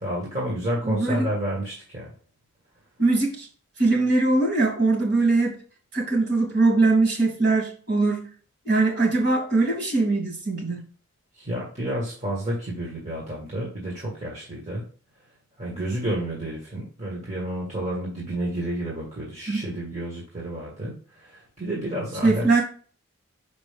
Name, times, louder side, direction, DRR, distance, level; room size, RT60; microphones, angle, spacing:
voice 1, 0.0-2.1 11.3-14.9 15.6-22.6, right 1 dB, 35° right, -4 dB, 1.6 m, -30 dB
voice 2, 0.8-1.3 3.0-3.5 3.8-5.6 5.9-8.3 8.6-10.8 19.5-19.6 22.2-22.6, right 3 dB, 50° right, 0 dB, 2.9 m, -21 dB
6.1 x 5.2 x 3.4 m, 0.40 s
head